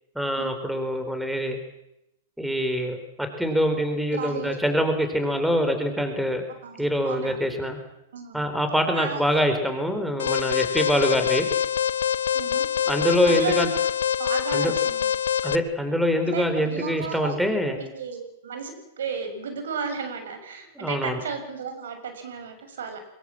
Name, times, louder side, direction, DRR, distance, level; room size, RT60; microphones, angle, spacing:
voice 1, 0.2-1.6 2.4-6.4 6.8-7.8 8.3-11.5 12.9-13.7 14.5-14.7 15.4-17.8 20.8-21.2, equal, ahead, 7 dB, 4.1 m, -24 dB
voice 2, 4.1-4.6 6.6-7.4 8.1-8.5 8.9-9.4 12.3-12.6 13.3-13.5 14.2-15.1 16.3-17.3 17.7-23.0, right 5 dB, 80° right, 7 dB, 6.8 m, -34 dB
Alarm, 10.2-15.6, left 8 dB, 90° left, 1.1 m, -25 dB
23.0 x 22.5 x 7.5 m, 0.86 s
hypercardioid pair, 130°, 0 cm